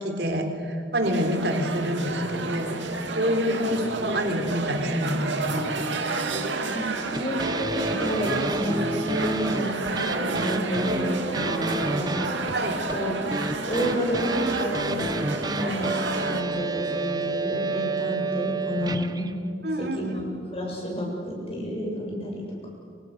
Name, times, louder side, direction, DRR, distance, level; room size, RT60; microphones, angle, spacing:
voice 1, 0.0-2.8 3.1-5.7 12.5-12.8 19.6-20.2, equal, 60° right, 5 dB, 3.7 m, -27 dB
sound 1, 1.0-16.4, right 3 dB, 75° right, 2.6 m, -30 dB
voice 2, 6.7-12.3 12.7-13.3 13.7-15.1 15.5-19.3 19.8-22.4, equal, 30° left, -2 dB, 7.8 m, -30 dB
sound 2, 7.1-19.3, right 2 dB, 20° right, 1.0 m, -30 dB
28.5 x 26.0 x 6.8 m, 2.5 s
head